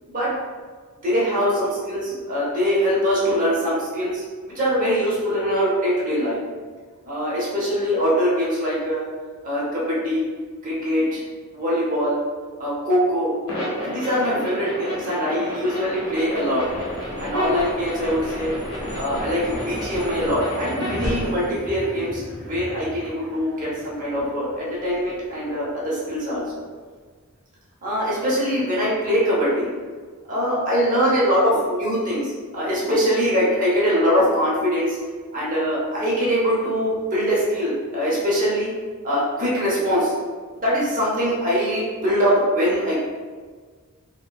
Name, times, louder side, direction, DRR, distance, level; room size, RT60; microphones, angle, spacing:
voice 1, 1.0-4.2 4.5-6.4 7.1-9.1 9.4-10.3 10.6-11.2 11.5-12.2 12.6-13.3 13.8-16.6 17.2-18.5 18.9-26.6 27.8-29.7 30.3-35.0 35.3-38.7 39.0-40.1 40.6-43.0, equal, 35° right, -7 dB, 0.8 m, -22 dB
sound 1, 13.5-21.3, equal, 70° left, 0.7 m, -31 dB
sound 2, 16.0-26.5, equal, 5° left, 0.9 m, -36 dB
2.9 x 2.1 x 2.3 m, 1.5 s
head